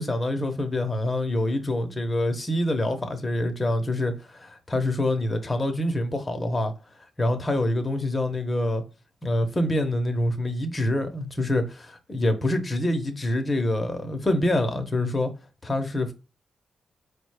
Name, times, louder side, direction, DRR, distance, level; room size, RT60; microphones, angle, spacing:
voice 1, 0.0-6.7 7.2-8.8 9.2-15.3 15.6-16.1, left 1 dB, 20° left, 0.7 m, -26 dB
4.9 x 2.2 x 4.7 m
wide cardioid pair, 150°, 0 cm